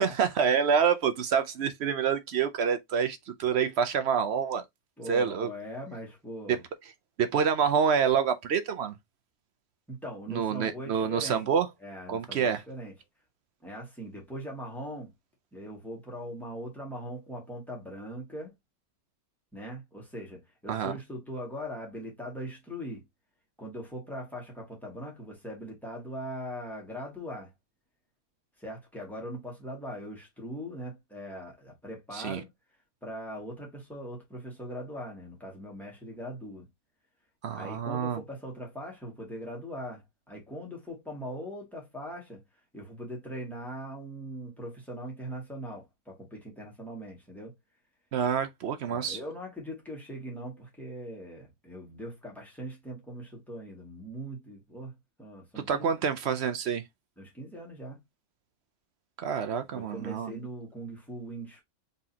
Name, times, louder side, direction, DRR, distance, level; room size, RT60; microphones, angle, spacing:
voice 1, 0.0-4.6 5.1-5.5 7.2-8.9 10.3-11.7 12.1-12.6 20.7-20.9 32.1-32.4 37.4-38.2 48.1-49.2 55.6-56.8 59.2-60.3, right 7 dB, 60° right, 0.7 m, -27 dB
voice 2, 5.0-6.6 9.9-11.5 11.8-12.9 13.6-15.1 15.5-18.5 19.5-23.0 23.6-27.5 28.6-32.5 33.0-36.7 37.5-42.4 42.7-47.5 48.9-55.9 57.2-58.0 59.7-61.6, equal, ahead, 1.9 m, -40 dB
4.1 x 3.7 x 2.7 m
omnidirectional pair, 1.6 m